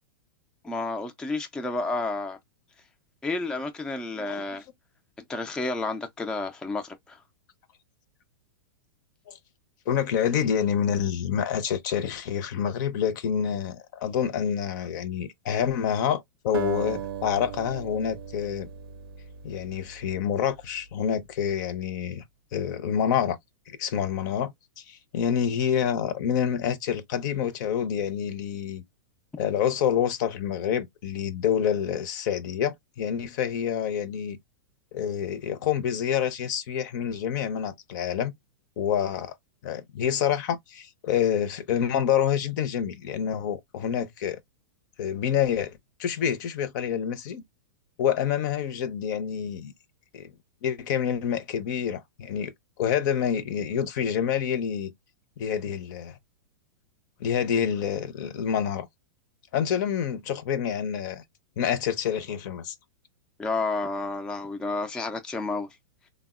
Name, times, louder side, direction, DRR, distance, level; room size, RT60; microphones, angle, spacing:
voice 1, 0.6-2.4 3.2-4.6 5.3-7.2 63.4-65.7, left 3 dB, 5° left, 0.3 m, -30 dB
voice 2, 9.9-18.7 19.4-22.2 22.5-23.4 23.7-28.8 29.4-34.4 34.9-38.3 38.8-39.3 39.6-44.4 45.0-47.4 48.0-49.7 50.1-50.3 50.6-52.5 52.8-54.9 55.4-56.2 57.2-58.9 59.5-61.2 61.6-62.7, left 8 dB, 55° left, 0.6 m, -27 dB
Acoustic guitar, 16.5-21.0, right 9 dB, 75° right, 0.5 m, -38 dB
3.4 x 2.0 x 2.3 m
hypercardioid pair, 135°, 12 cm